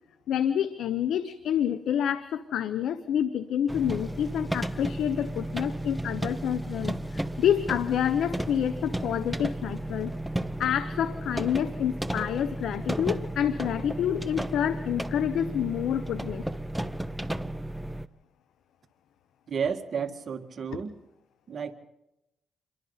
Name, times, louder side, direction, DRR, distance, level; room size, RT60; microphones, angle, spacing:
voice 1, 0.3-10.1 10.6-16.4, left 9 dB, 80° left, 12 dB, 0.9 m, -28 dB
sound 1, 3.7-18.1, right 1 dB, 5° right, 0.9 m, -33 dB
voice 2, 19.5-21.0 21.5-21.7, right 6 dB, 55° right, 6 dB, 1.8 m, -32 dB
28.0 x 23.0 x 4.1 m, 0.89 s
cardioid pair, 75°, 0 cm